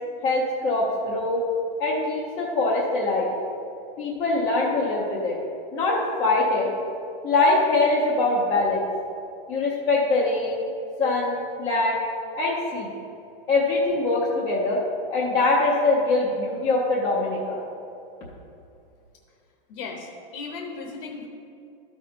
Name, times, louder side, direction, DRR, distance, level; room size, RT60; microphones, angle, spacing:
voice 1, 0.2-1.4 1.8-3.3 4.0-5.4 5.7-6.7 7.2-8.9 9.5-10.6 11.0-12.0 12.4-12.9 13.5-14.8 15.1-17.6, left 2 dB, 10° left, -8 dB, 0.5 m, -23 dB
voice 2, 19.7-21.3, left 4 dB, 35° left, 1 dB, 0.8 m, -36 dB
13.0 x 4.3 x 5.0 m, 2.6 s
supercardioid pair, 180°, 29 cm